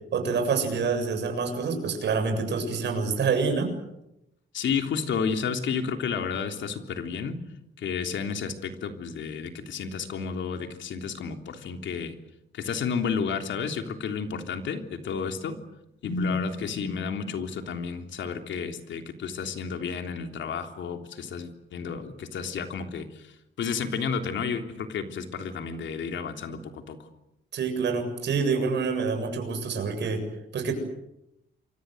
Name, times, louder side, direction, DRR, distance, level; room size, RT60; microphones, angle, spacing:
voice 1, 0.1-3.7 27.5-30.2 30.5-30.7, right 5 dB, 60° right, 5 dB, 7.5 m, -27 dB
voice 2, 4.5-7.4 7.8-12.1 12.5-15.6 16.0-27.0, left 6 dB, 70° left, 6 dB, 3.4 m, -31 dB
28.5 x 24.5 x 8.0 m, 0.85 s
cardioid pair, 150°, 20 cm